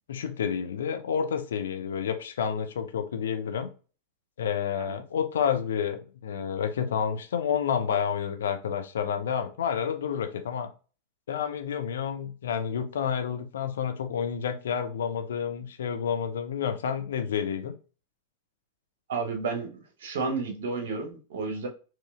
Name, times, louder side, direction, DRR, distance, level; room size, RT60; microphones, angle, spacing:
voice 1, 0.1-3.7 4.4-10.7 11.3-17.7, left 7 dB, 65° left, 7 dB, 0.5 m, -29 dB
voice 2, 19.1-19.7 20.0-21.7, right 4 dB, 60° right, 4 dB, 0.9 m, -31 dB
4.7 x 3.0 x 2.4 m, 0.36 s
figure-of-eight pair, 90°, 0 cm